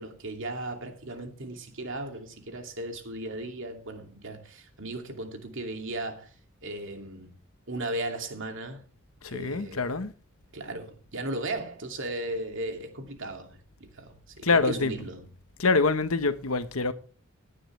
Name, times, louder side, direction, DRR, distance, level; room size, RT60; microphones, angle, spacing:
voice 1, 0.0-7.4 7.7-8.9 9.3-9.9 10.5-15.3, right 1 dB, 60° right, 2.6 m, -36 dB
voice 2, 9.2-10.1 14.4-14.9 15.6-16.9, left 3 dB, 90° left, 1.2 m, -25 dB
17.5 x 10.0 x 3.3 m
head